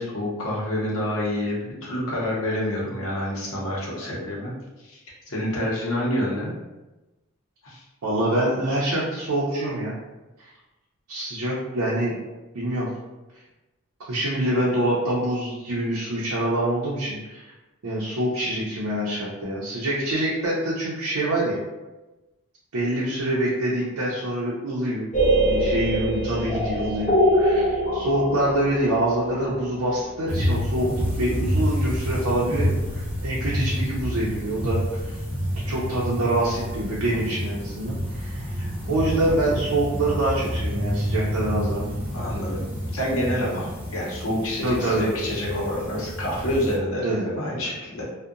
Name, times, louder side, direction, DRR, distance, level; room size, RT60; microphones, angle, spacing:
voice 1, 0.0-4.5 4.8-5.0 5.3-6.5 7.6-7.8 42.1-42.7 42.9-48.0, left 1 dB, 65° left, -4 dB, 0.7 m, -27 dB
voice 2, 8.0-10.0 10.4-10.5 11.1-12.2 12.5-12.9 14.1-17.5 17.8-21.6 22.7-25.1 25.4-35.2 35.6-38.5 38.9-41.9 44.6-45.1 47.0-47.3, right 1 dB, 80° right, -6 dB, 0.5 m, -25 dB
sound 1, 25.1-30.9, equal, 30° left, 0.6 m, -24 dB
sound 2, 30.3-46.8, equal, 10° right, 0.5 m, -28 dB
2.7 x 2.1 x 2.4 m, 1.1 s
head